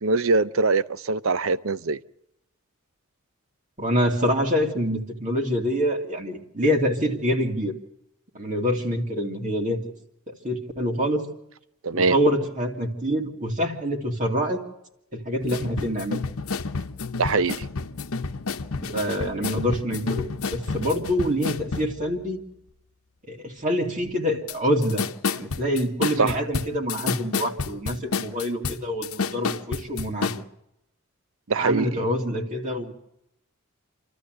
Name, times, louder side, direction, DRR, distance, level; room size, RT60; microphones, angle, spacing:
voice 1, 0.0-2.0 11.8-12.1 17.2-17.6 26.2-26.4 31.5-32.0, right 3 dB, 65° right, 0.7 m, -23 dB
voice 2, 3.8-7.7 8.3-9.8 10.3-11.3 11.9-14.6 15.1-16.2 18.8-22.4 23.3-25.0 25.3-30.4 31.6-32.9, equal, 40° right, 2.8 m, -26 dB
sound 1, 15.4-22.0 24.5-24.6 24.8-30.4, left 4 dB, 80° left, 0.9 m, -30 dB
28.0 x 13.5 x 7.9 m
head